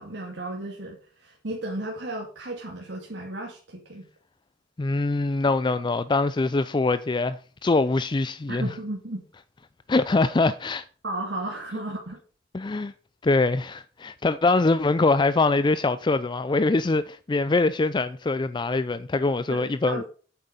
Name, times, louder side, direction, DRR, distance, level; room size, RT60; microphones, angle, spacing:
voice 1, 0.0-4.1 8.5-9.3 11.0-12.2 19.5-20.0, right 1 dB, 75° right, 2.4 m, -34 dB
voice 2, 4.8-8.7 9.9-10.8 12.5-12.9 13.2-20.0, left 3 dB, 25° left, 0.4 m, -23 dB
9.0 x 7.6 x 5.3 m
head